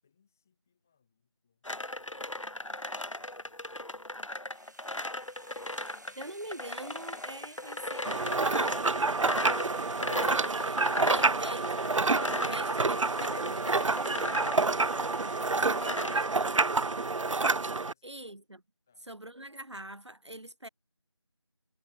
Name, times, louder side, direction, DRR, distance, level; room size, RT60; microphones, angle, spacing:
voice 1, 0.0-1.8 18.9-19.1, left 7 dB, 5° left, 6.1 m, -74 dB
sound 1, 1.6-16.2, left 1 dB, 85° left, 2.2 m, -37 dB
sound 2, 4.5-17.6, right 1 dB, 35° right, 2.2 m, -55 dB
voice 2, 6.2-9.2 10.4-13.8 16.0-16.3 18.0-18.4 19.1-20.7, right 1 dB, 65° right, 3.1 m, -44 dB
sound 3, 8.1-17.9, right 3 dB, 90° right, 0.5 m, -28 dB
figure-of-eight pair, 180°, 16 cm